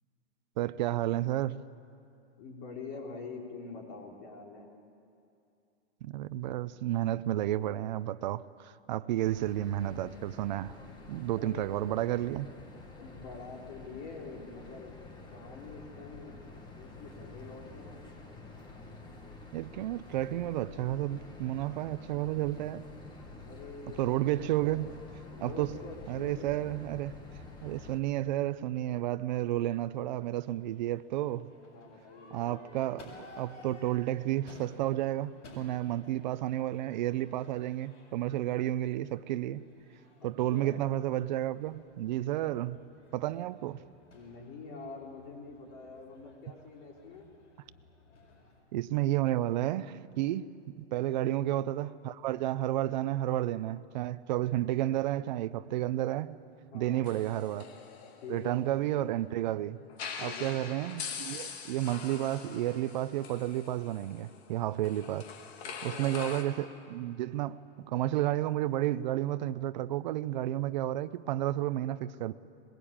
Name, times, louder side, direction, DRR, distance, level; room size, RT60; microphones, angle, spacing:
voice 1, 0.6-1.6 6.0-10.7 11.1-12.5 19.5-22.8 24.0-24.9 25.4-25.8 26.1-27.1 27.6-31.5 32.3-39.6 40.2-42.8 43.1-43.8 48.7-50.5 50.8-56.4 56.7-57.7 58.3-59.8 60.2-65.3 65.8-72.3, right 14 dB, 40° right, 0.6 m, -31 dB
voice 2, 2.4-4.7 11.3-11.6 13.0-14.9 15.3-16.4 16.7-18.1 23.5-26.6 31.7-32.7 40.2-40.8 44.1-47.3 51.0-51.4 56.7-57.1 58.2-58.6 60.2-60.5 65.6-66.2, left 4 dB, 40° left, 3.8 m, -46 dB
sound 1, 9.2-28.0, left 3 dB, 10° left, 1.5 m, -49 dB
Crowd / Fireworks, 29.6-48.6, left 2 dB, 85° left, 7.4 m, -57 dB
sound 2, 57.1-59.1 59.9-66.4, left 6 dB, 60° left, 2.5 m, -43 dB
21.5 x 21.5 x 8.8 m
supercardioid pair, 160°, 35 cm